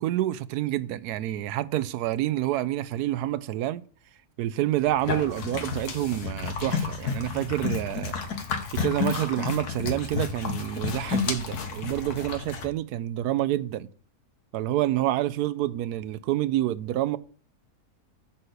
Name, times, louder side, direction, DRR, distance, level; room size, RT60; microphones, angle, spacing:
voice 1, 0.0-3.8 4.4-8.1 8.7-13.9 14.5-17.2, right 14 dB, 85° right, 1.1 m, -28 dB
sound 1, 4.8-12.7, left 5 dB, 90° left, 1.7 m, -31 dB
9.4 x 4.2 x 6.5 m
omnidirectional pair, 1.6 m